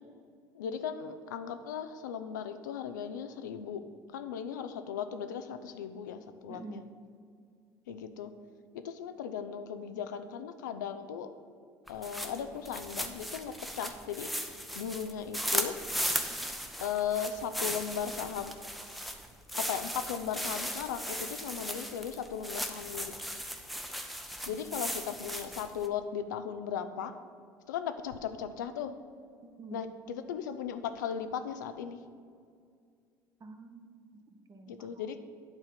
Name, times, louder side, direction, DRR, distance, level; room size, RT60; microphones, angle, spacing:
voice 1, 0.6-3.8 4.1-6.8 7.9-8.3 8.8-11.3 11.9-14.3 14.8-15.7 16.8-18.5 19.7-23.1 24.5-27.1 27.7-28.9 29.7-32.0 34.7-35.2, left 8 dB, 90° left, 9 dB, 0.4 m, -37 dB
voice 2, 6.5-6.9 29.6-29.8 33.4-35.1, right 3 dB, 35° right, 6 dB, 0.9 m, -48 dB
sound 1, 11.9-25.9, equal, ahead, 0.7 m, -37 dB
8.9 x 3.6 x 5.7 m, 2.2 s
hypercardioid pair, 70°, 10 cm